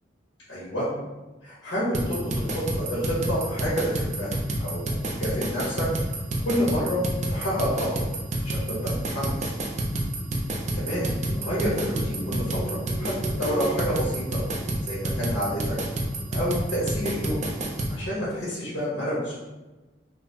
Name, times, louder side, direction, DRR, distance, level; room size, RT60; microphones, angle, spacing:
voice 1, 0.5-0.9 1.4-2.5 2.8-4.3 4.6-5.9 6.4-7.0 7.3-8.1 8.4-9.5 10.7-13.1 13.4-14.4 14.8-15.8 16.3-17.4 17.9-19.4, equal, 70° left, -8 dB, 1.2 m, -29 dB
sound 1, 1.9-17.9, right 1 dB, 40° right, 0.4 m, -28 dB
sound 2, 8.4-16.7, right 2 dB, 35° left, 0.5 m, -41 dB
3.8 x 2.1 x 2.8 m, 1.1 s
head